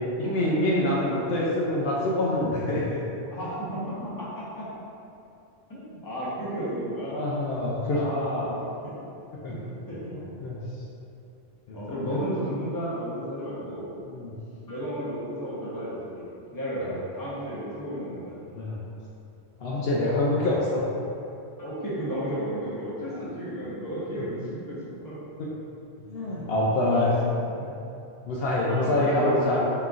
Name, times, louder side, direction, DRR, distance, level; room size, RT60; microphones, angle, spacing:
voice 1, 0.2-3.0 7.1-8.0 9.4-9.5 10.4-10.6 11.7-12.2 14.1-14.4 18.5-18.8 19.6-20.8 23.1-23.2 26.1-27.1 27.6-27.8 28.3-29.6, left 1 dB, 70° left, -5 dB, 0.8 m, -26 dB
voice 2, 3.3-3.8 4.5-4.6 5.7-7.2 7.9-8.9 9.5-9.6 9.9-10.1 11.7-13.9 14.7-18.3 21.6-24.8 25.0-25.2 26.9-27.4 28.7-29.6, equal, 20° left, -8 dB, 0.9 m, -33 dB
4.3 x 3.8 x 2.4 m, 2.7 s
omnidirectional pair, 1.1 m